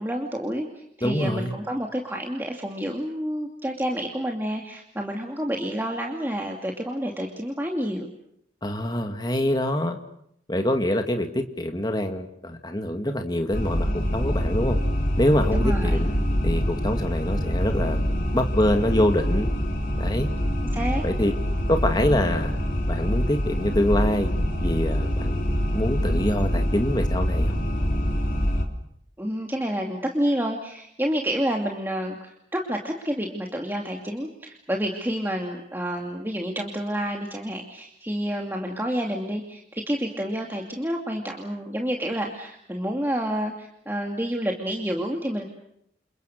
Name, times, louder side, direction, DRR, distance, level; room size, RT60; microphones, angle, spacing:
voice 1, 0.0-8.1 15.5-16.0 20.7-21.0 29.2-45.5, equal, 10° right, 1 dB, 2.6 m, -29 dB
voice 2, 1.0-1.5 8.6-10.0 10.5-14.8 15.2-16.1 16.4-18.0 18.3-19.5 20.0-20.3 21.0-21.3 21.7-22.6 22.9-24.3 24.6-25.4 25.7-27.6, left 1 dB, 20° left, 5 dB, 2.1 m, -25 dB
sound 1, 13.5-28.7, equal, 45° left, 3.6 m, -25 dB
29.0 x 28.5 x 6.7 m, 0.74 s
head